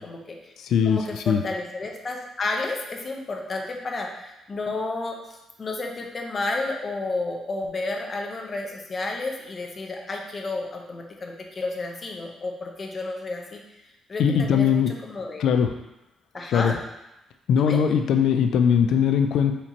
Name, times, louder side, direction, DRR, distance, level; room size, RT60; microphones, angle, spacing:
voice 1, 0.0-0.5 0.8-13.6 14.1-15.5 16.3-16.7 17.6-17.8, left 2 dB, 40° left, 1 dB, 0.8 m, -31 dB
voice 2, 0.6-1.4 14.2-14.9 15.4-15.7 16.5-16.7 17.5-19.5, left 7 dB, 75° left, 7 dB, 0.3 m, -20 dB
4.3 x 4.2 x 2.9 m, 0.93 s
cardioid pair, 90°, 0 cm